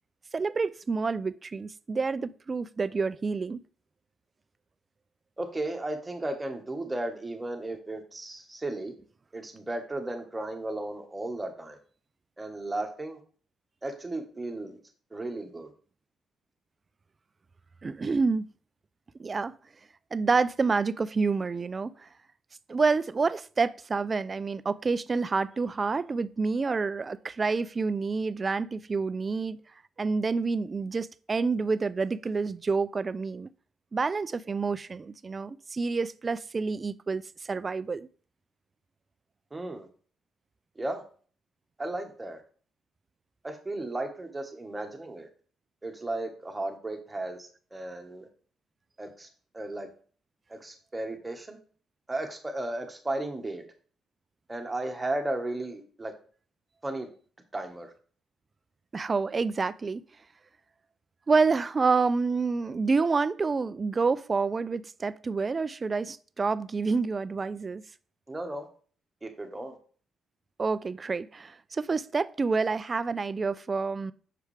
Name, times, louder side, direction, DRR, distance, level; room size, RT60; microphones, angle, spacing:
voice 1, 0.3-3.6 17.8-18.5 19.2-19.5 20.1-22.1 22.7-29.6 30.0-33.5 33.9-38.1 58.9-60.0 61.3-67.8 70.6-74.1, right 4 dB, 30° right, 0.3 m, -28 dB
voice 2, 5.4-8.9 9.3-11.8 12.4-13.2 13.8-14.8 15.1-15.7 39.5-39.9 40.8-41.0 41.8-42.4 43.4-45.3 45.8-48.3 49.0-49.3 49.5-49.9 50.5-51.6 52.1-53.6 54.5-56.1 56.8-57.1 57.5-57.9 68.3-68.7 69.2-69.8, right 2 dB, 15° right, 1.3 m, -35 dB
6.7 x 4.8 x 3.3 m
cardioid pair, 90°, 0 cm